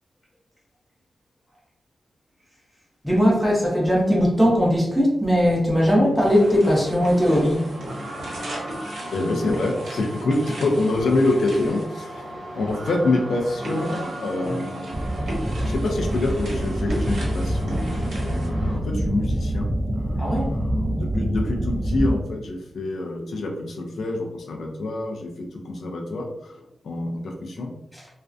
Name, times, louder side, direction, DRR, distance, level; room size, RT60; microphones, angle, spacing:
voice 1, 3.0-7.6 20.2-20.5, equal, ahead, -5 dB, 0.8 m, -19 dB
sound 1, 6.2-18.8, right 1 dB, 75° right, 1.0 m, -34 dB
voice 2, 9.1-15.0 15.6-19.7 19.9-27.7, left 2 dB, 75° left, 1 dB, 0.4 m, -26 dB
sound 2, 14.9-22.1, right 1 dB, 30° right, 0.3 m, -26 dB
2.4 x 2.1 x 2.4 m, 0.83 s
wide cardioid pair, 140°, 0 cm